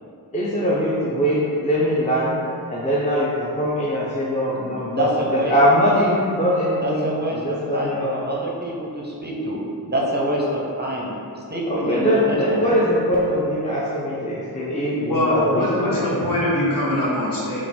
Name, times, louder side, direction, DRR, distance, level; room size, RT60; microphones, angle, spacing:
voice 1, 0.3-2.4 2.7-8.2 11.7-16.1, equal, 20° left, -6 dB, 0.5 m, -22 dB
voice 2, 4.9-5.5 5.8-5.9 6.8-9.6 9.8-12.8, equal, 25° right, -3 dB, 0.6 m, -26 dB
voice 3, 15.1-17.6, left 1 dB, 60° left, -7 dB, 1.2 m, -22 dB
3.9 x 2.4 x 4.1 m, 2.5 s
wide cardioid pair, 50°, 39 cm